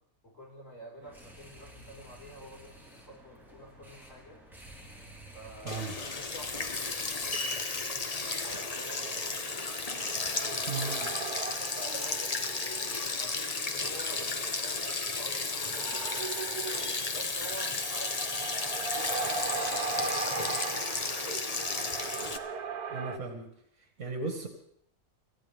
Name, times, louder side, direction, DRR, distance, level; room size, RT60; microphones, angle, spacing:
voice 1, 0.2-4.4 5.3-9.4 10.2-10.9 11.4-12.8 13.2-16.3 17.1-22.1, right 1 dB, 55° left, -3 dB, 5.3 m, -49 dB
sound 1, 1.0-7.5, right 1 dB, ahead, 4.4 m, -52 dB
Sink (filling or washing), 5.7-22.4, left 3 dB, 30° left, 0.8 m, -33 dB
sound 2, 8.1-23.2, right 5 dB, 80° right, 1.6 m, -39 dB
voice 2, 10.7-11.1 22.9-23.5 23.8-24.5, right 4 dB, 65° right, 2 dB, 2.4 m, -36 dB
26.0 x 15.5 x 3.6 m, 0.69 s
omnidirectional pair, 1.6 m